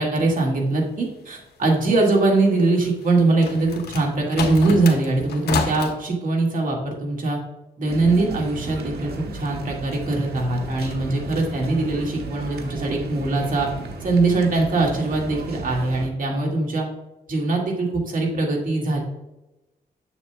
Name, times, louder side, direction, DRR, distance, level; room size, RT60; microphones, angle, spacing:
voice 1, 0.0-7.4 7.8-13.7 14.0-16.9 17.3-19.0, right 2 dB, 55° right, 0 dB, 2.0 m, -22 dB
sound 1, 3.0-5.9, left 5 dB, 90° left, 0.9 m, -29 dB
sound 2, 7.8-16.1, right 3 dB, 85° right, 1.1 m, -35 dB
7.3 x 7.0 x 2.3 m, 0.99 s
cardioid pair, 100°, 16 cm